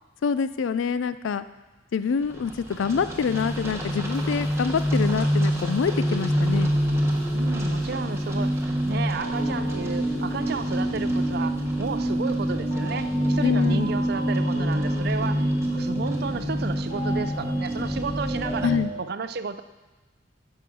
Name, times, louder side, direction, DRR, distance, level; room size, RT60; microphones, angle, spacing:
voice 1, 0.2-1.4 1.9-6.7 13.4-13.9 18.6-18.9, left 6 dB, 80° left, 13 dB, 0.4 m, -26 dB
sound 1, 2.2-18.8, equal, 15° right, 1.3 m, -26 dB
sound 2, 3.4-19.0, equal, 40° left, 2.1 m, -41 dB
voice 2, 7.3-19.6, right 5 dB, 55° right, 11 dB, 0.5 m, -33 dB
12.5 x 5.6 x 6.2 m, 1.2 s
head